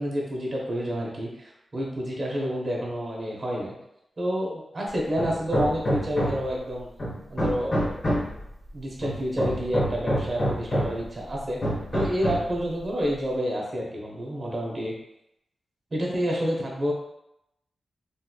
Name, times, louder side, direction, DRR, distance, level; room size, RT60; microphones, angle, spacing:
voice 1, 0.0-3.8 4.2-6.9 7.3-8.0 8.7-11.6 11.9-14.9 15.9-16.9, equal, 40° right, -2 dB, 0.9 m, -29 dB
Hammer, 5.2-6.6 7.0-8.4 9.0-11.1 11.6-12.6, equal, 40° left, 1.2 m, -27 dB
3.2 x 3.0 x 2.2 m, 0.82 s
wide cardioid pair, 95°, 0 cm